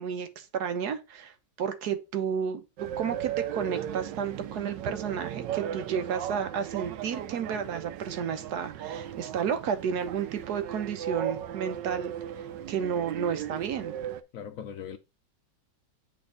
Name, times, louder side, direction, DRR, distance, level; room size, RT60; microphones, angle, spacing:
voice 1, 0.0-13.9, right 7 dB, 65° right, 1.3 m, -32 dB
sound 1, 2.8-14.2, right 10 dB, 85° right, 1.3 m, -37 dB
voice 2, 14.3-15.0, left 8 dB, 70° left, 0.8 m, -39 dB
8.4 x 3.5 x 3.7 m
omnidirectional pair, 1.9 m